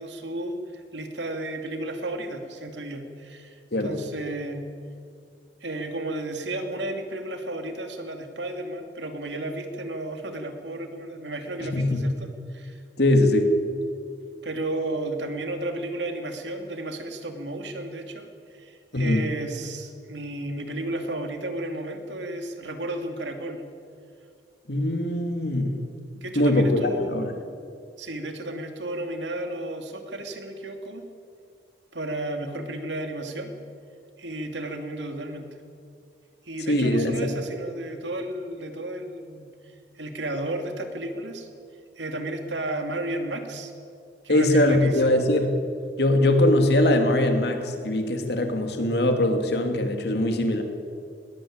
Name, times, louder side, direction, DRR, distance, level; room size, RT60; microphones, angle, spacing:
voice 1, 0.0-4.6 5.6-12.8 14.4-23.6 26.2-27.1 28.0-31.0 31.9-33.5 34.2-35.5 36.4-39.5 39.9-41.5 42.0-43.7 44.2-45.2, right 1 dB, 90° right, 5 dB, 2.7 m, -33 dB
voice 2, 11.6-12.1 13.0-13.6 18.9-19.2 24.7-25.8 26.4-27.3 36.7-37.3 44.3-45.5 46.0-50.6, left 1 dB, 65° left, 5 dB, 2.7 m, -22 dB
20.5 x 19.0 x 8.9 m, 2.4 s
head